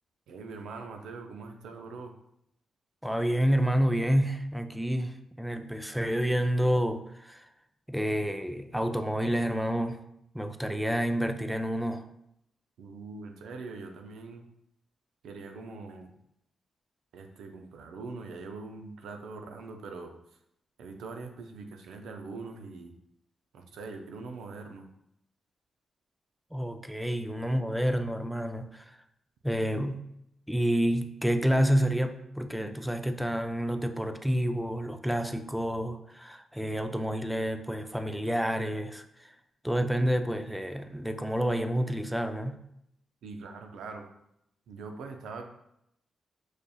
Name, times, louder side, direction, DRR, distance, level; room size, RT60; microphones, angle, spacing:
voice 1, 0.3-2.1 12.8-14.4 15.2-16.1 17.1-20.1 20.8-22.9 23.5-24.9 43.2-44.1 44.7-45.4, right 4 dB, 80° right, 4 dB, 0.5 m, -42 dB
voice 2, 3.0-7.5 7.9-10.0 10.3-12.1 26.5-29.0 29.4-30.0 30.5-39.3 39.6-42.6, equal, 5° right, 7 dB, 0.4 m, -29 dB
6.3 x 2.7 x 2.3 m, 0.77 s
supercardioid pair, 45°, 0 cm